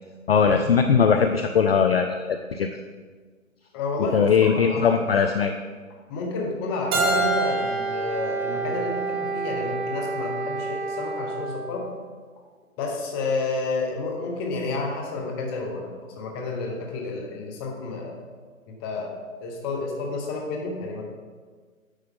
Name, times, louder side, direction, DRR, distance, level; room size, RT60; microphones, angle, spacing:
voice 1, 0.3-2.7 4.1-5.5, left 6 dB, 45° left, 6 dB, 0.5 m, -20 dB
voice 2, 3.7-5.0 6.1-11.9 12.8-18.2 18.7-19.1 19.4-21.0, left 3 dB, 15° left, 1 dB, 1.1 m, -30 dB
Keyboard (musical), 6.9-9.7, right 3 dB, 15° right, 0.9 m, -28 dB
Wind instrument woodwind instrument, 6.9-11.8, right 4 dB, 45° right, 1.5 m, -30 dB
10.0 x 7.6 x 3.7 m, 1.5 s
hypercardioid pair, 145°, 42 cm